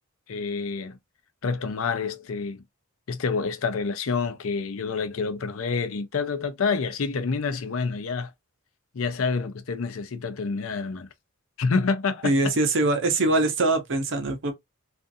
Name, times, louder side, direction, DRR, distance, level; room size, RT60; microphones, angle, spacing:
voice 1, 0.3-1.0 1.4-2.6 3.1-8.3 8.9-11.1 11.6-12.5, left 4 dB, 65° left, 0.5 m, -28 dB
voice 2, 12.2-14.5, right 2 dB, 55° right, 0.7 m, -23 dB
2.5 x 2.4 x 2.5 m
head